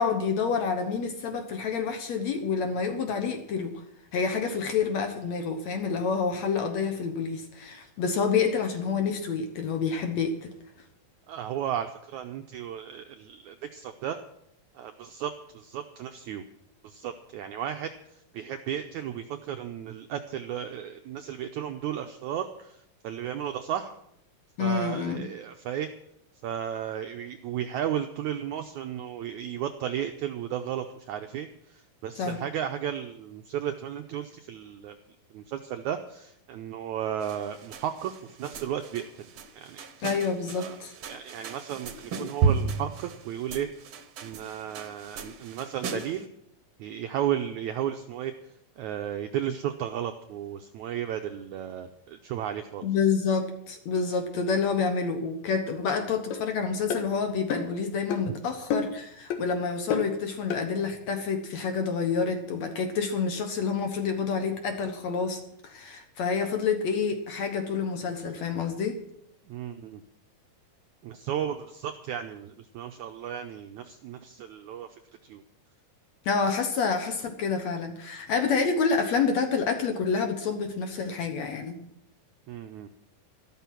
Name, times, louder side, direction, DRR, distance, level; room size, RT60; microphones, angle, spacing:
voice 1, 0.0-3.8 4.1-10.5 24.6-25.3 32.2-32.4 40.0-40.9 52.8-69.0 76.3-81.8, left 5 dB, 60° left, 5 dB, 2.0 m, -28 dB
voice 2, 11.3-14.2 14.8-16.4 16.8-17.9 18.3-23.9 24.6-25.9 26.4-35.0 35.3-39.3 39.5-39.9 40.5-40.8 41.0-44.0 44.2-46.3 46.8-48.3 48.8-52.9 58.3-58.4 69.5-70.0 71.0-75.4 82.5-82.9, right 10 dB, 90° right, 6 dB, 1.7 m, -34 dB
sound 1, 37.2-46.3, right 5 dB, 65° right, 1.6 m, -34 dB
sound 2, 56.3-56.4 56.9-57.1 57.5-57.8 58.1-58.2 58.7-59.0 59.3-59.4 59.9-60.1 60.5-60.6, left 5 dB, 80° left, 3.2 m, -29 dB
13.0 x 12.5 x 6.0 m, 0.76 s
omnidirectional pair, 4.3 m